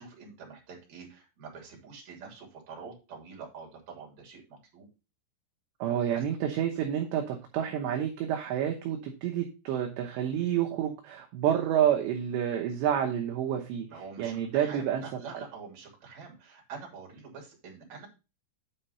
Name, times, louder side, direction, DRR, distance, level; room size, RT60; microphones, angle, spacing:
voice 1, 0.0-4.9 5.8-6.2 13.9-18.1, right 5 dB, 40° right, 0 dB, 3.6 m, -46 dB
voice 2, 5.8-13.9 14.2-15.0, right 10 dB, 75° right, 2 dB, 2.9 m, -29 dB
9.1 x 4.5 x 5.5 m, 0.30 s
omnidirectional pair, 5.7 m